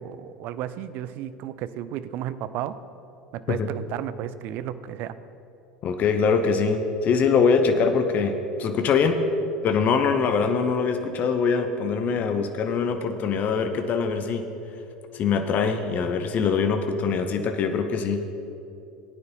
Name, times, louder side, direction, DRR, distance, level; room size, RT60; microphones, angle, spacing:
voice 1, 0.0-2.8 3.5-5.1 10.1-10.2, right 11 dB, 50° right, 14 dB, 0.5 m, -33 dB
voice 2, 5.8-9.2 9.6-14.4 15.1-18.2, left 5 dB, 40° left, 7 dB, 0.7 m, -23 dB
17.5 x 9.5 x 3.0 m, 2.8 s
figure-of-eight pair, 75°, 4 cm